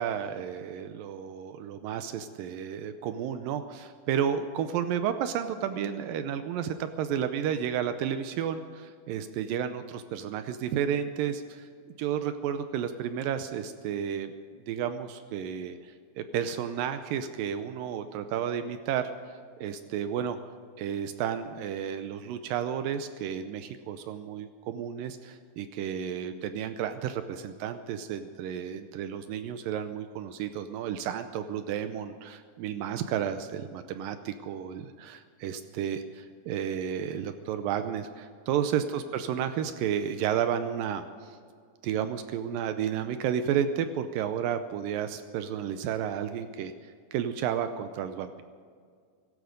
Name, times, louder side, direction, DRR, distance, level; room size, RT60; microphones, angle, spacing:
voice 1, 0.0-11.7 12.0-14.3 14.7-20.4 20.8-41.4 41.8-48.4, right 9 dB, 85° right, 9 dB, 2.0 m, -32 dB
17.0 x 16.0 x 5.1 m, 2.1 s
omnidirectional pair, 4.8 m